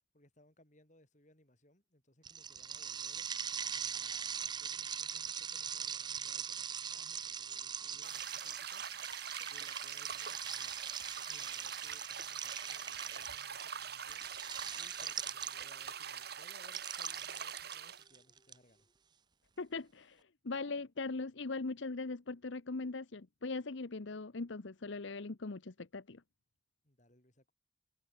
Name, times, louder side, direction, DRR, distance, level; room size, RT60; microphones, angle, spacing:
voice 1, 0.0-18.9 26.8-27.5, left 1 dB, 35° left, 4.6 m, -66 dB
sound 1, 2.2-15.9 16.6-18.5, right 7 dB, 20° right, 0.5 m, -41 dB
sound 2, 8.0-18.0, right 8 dB, 50° right, 1.8 m, -44 dB
sound 3, 14.2-19.1, left 1 dB, 20° left, 7.7 m, -73 dB
voice 2, 19.6-26.2, left 3 dB, 70° left, 0.9 m, -40 dB
head